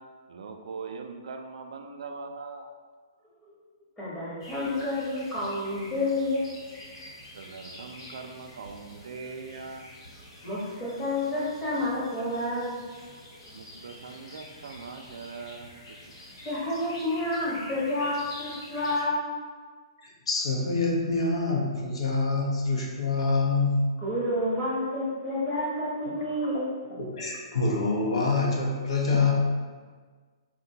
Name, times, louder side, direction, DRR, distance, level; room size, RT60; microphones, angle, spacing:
voice 1, 0.0-2.7 7.3-9.9 13.5-16.0, right 4 dB, 80° right, 5 dB, 0.3 m, -41 dB
voice 2, 4.0-6.6 10.4-12.8 13.4-13.7 16.4-19.4 24.0-26.7, left 1 dB, 10° left, -9 dB, 0.9 m, -29 dB
sound 1, 4.4-19.0, left 1 dB, 55° left, 1.0 m, -47 dB
voice 3, 20.0-23.8 26.1-26.2 27.0-29.3, left 3 dB, 85° left, -1 dB, 0.7 m, -26 dB
3.8 x 2.1 x 2.7 m, 1.5 s
hypercardioid pair, 160°, 3 cm